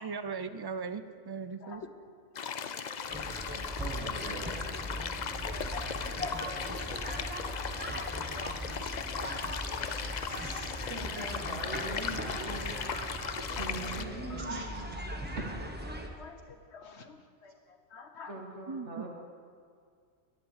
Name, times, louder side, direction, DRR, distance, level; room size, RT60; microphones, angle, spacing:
voice 1, 0.0-1.8 18.7-19.0, right 5 dB, 40° right, 11 dB, 0.3 m, -38 dB
voice 2, 1.6-2.1 5.4-6.7 7.2-7.9 8.3-8.6 9.1-9.4 12.5-12.6 12.8-13.0 13.5-13.9 14.3-14.4 15.9-18.4, left 4 dB, 65° left, 6 dB, 1.4 m, -46 dB
sound 1, 2.3-14.0, left 6 dB, 50° left, 0.6 m, -37 dB
sound 2, 3.1-16.1, right 1 dB, 10° right, 1.1 m, -39 dB
voice 3, 3.7-4.6 8.7-9.0 9.9-12.8 13.6-15.4 18.3-19.1, right 2 dB, 75° right, 1 dB, 1.8 m, -42 dB
11.5 x 11.0 x 8.1 m, 2.2 s
omnidirectional pair, 1.2 m